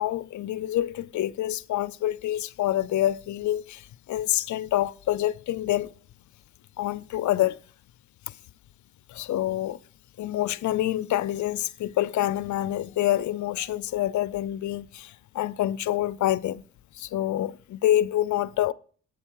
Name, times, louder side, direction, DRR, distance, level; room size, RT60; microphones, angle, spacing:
voice 1, 0.0-5.9 6.8-7.6 8.3-8.4 9.1-9.8 10.2-16.6 16.9-18.7, left 13 dB, 65° left, 0.6 m, -27 dB
8.5 x 7.2 x 4.6 m
cardioid pair, 70°, 31 cm